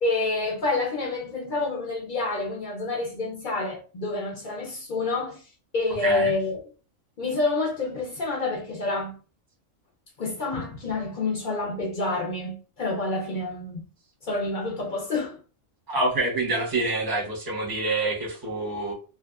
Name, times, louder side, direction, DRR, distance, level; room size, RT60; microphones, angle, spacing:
voice 1, 0.0-5.5 5.7-6.6 7.2-9.1 10.2-13.8 14.2-15.4, left 3 dB, 55° left, 0.6 m, -28 dB
voice 2, 15.9-18.9, right 2 dB, 20° right, 0.7 m, -26 dB
2.5 x 2.4 x 2.3 m
omnidirectional pair, 1.4 m